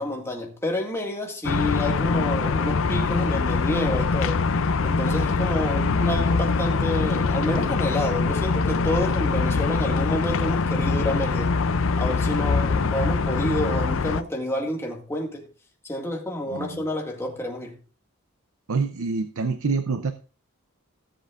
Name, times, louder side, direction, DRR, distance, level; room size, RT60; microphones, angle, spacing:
voice 1, 0.0-4.5 4.8-11.6 12.0-15.5 15.9-17.8, left 1 dB, 10° left, 2.0 m, -29 dB
sound 1, 1.4-14.2, left 4 dB, 65° left, 0.5 m, -23 dB
voice 2, 12.4-12.9 16.5-16.8 18.7-20.1, right 4 dB, 85° right, 0.7 m, -28 dB
17.5 x 7.6 x 2.5 m
head